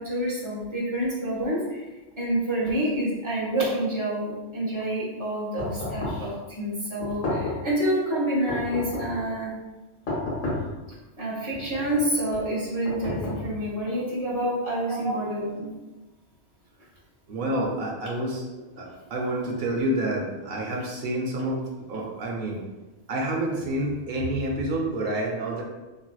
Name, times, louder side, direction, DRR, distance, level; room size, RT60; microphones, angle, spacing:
voice 1, 0.0-1.8 2.2-9.5 11.2-15.7, right 1 dB, 25° right, -7 dB, 1.0 m, -28 dB
sound 1, 5.6-6.3 7.0-7.7 8.5-9.2 10.1-10.8 11.5-12.1 12.8-13.7, left 2 dB, 70° left, 1.3 m, -31 dB
voice 2, 17.3-22.6 23.1-25.6, right 1 dB, 55° right, -2 dB, 0.8 m, -28 dB
3.1 x 2.8 x 2.3 m, 1.1 s
omnidirectional pair, 1.3 m